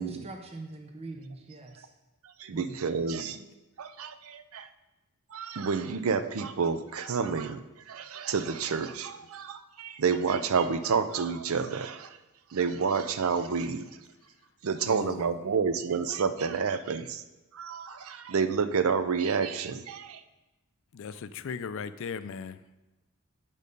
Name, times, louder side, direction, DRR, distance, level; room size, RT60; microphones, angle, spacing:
voice 1, 0.0-1.9 2.5-2.7, right 2 dB, 30° right, 4 dB, 0.7 m, -42 dB
voice 2, 2.4-3.5 3.8-4.7 5.3-12.2 12.5-13.9 14.6-17.2 17.5-20.2, right 5 dB, 75° right, 11 dB, 0.5 m, -29 dB
voice 3, 14.8-15.3 20.9-22.6, left 6 dB, 65° left, 13 dB, 0.4 m, -37 dB
8.5 x 5.4 x 5.3 m, 1.1 s
head